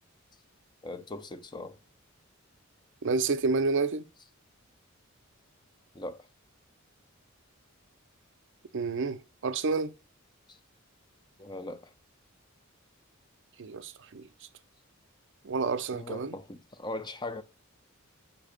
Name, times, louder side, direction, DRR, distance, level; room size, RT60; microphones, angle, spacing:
voice 1, 0.8-1.8 5.9-6.3 10.5-10.6 11.4-11.9 15.9-17.4, left 2 dB, 20° left, 0.6 m, -39 dB
voice 2, 3.0-4.1 8.7-9.9 13.6-14.3 15.4-16.4, right 4 dB, 60° right, 0.5 m, -29 dB
7.3 x 2.8 x 5.0 m
head